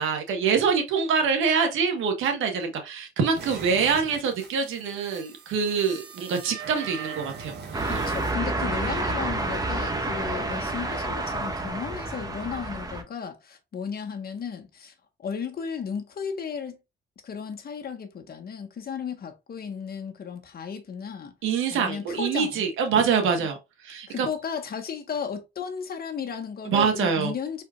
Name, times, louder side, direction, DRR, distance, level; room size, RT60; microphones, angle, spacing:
voice 1, 0.0-7.9 21.4-23.6 23.8-24.3 26.6-27.3, right 6 dB, 85° right, 1.5 m, -25 dB
sound 1, 3.3-8.3, right 6 dB, 55° right, 1.4 m, -40 dB
sound 2, 7.7-13.0, right 2 dB, 20° right, 1.2 m, -29 dB
voice 2, 7.8-14.9 15.2-16.8 17.2-21.3 21.7-22.7 23.4-23.5 24.1-27.6, left 6 dB, 50° left, 1.4 m, -34 dB
4.9 x 4.3 x 2.5 m
cardioid pair, 90°, 20 cm